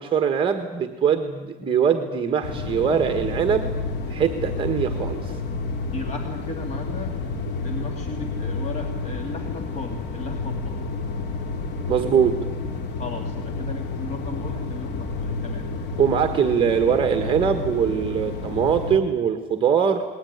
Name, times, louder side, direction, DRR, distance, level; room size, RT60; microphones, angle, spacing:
voice 1, 0.0-3.7 4.1-5.4 11.9-12.4 16.0-20.0, right 7 dB, 25° right, 7 dB, 1.6 m, -22 dB
sound 1, 2.4-19.0, left 3 dB, 65° left, 3.0 m, -30 dB
voice 2, 5.9-7.1 7.6-10.8 12.9-15.7, left 3 dB, 35° left, 4 dB, 2.6 m, -35 dB
29.0 x 20.5 x 9.6 m, 1.3 s
cardioid pair, 150°, 19 cm